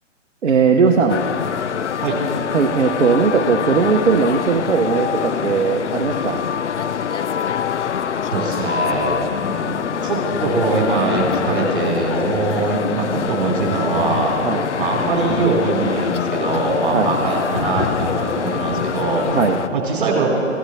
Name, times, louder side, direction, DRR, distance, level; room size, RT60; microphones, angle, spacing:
voice 1, 0.4-1.2 2.5-6.4 14.4-14.6 16.9-17.1 19.3-19.6, right 5 dB, 60° right, 3 dB, 0.9 m, -18 dB
sound 1, 1.1-19.7, left 8 dB, 65° left, 0.5 m, -24 dB
voice 2, 8.3-14.4 14.8-19.4 19.7-20.3, right 3 dB, 40° right, -1 dB, 3.2 m, -22 dB
15.5 x 11.5 x 4.2 m, 2.7 s
figure-of-eight pair, 135°, 39 cm